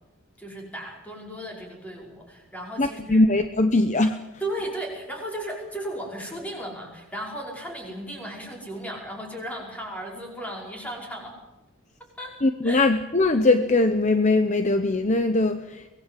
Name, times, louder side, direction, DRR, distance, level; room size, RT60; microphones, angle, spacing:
voice 1, 0.4-3.2 4.4-11.3 12.2-12.4 12.6-12.8, right 1 dB, 5° left, -1 dB, 5.4 m, -35 dB
voice 2, 2.8-4.2 12.4-15.9, left 2 dB, 35° left, 9 dB, 0.8 m, -21 dB
24.0 x 19.0 x 7.6 m, 1.1 s
head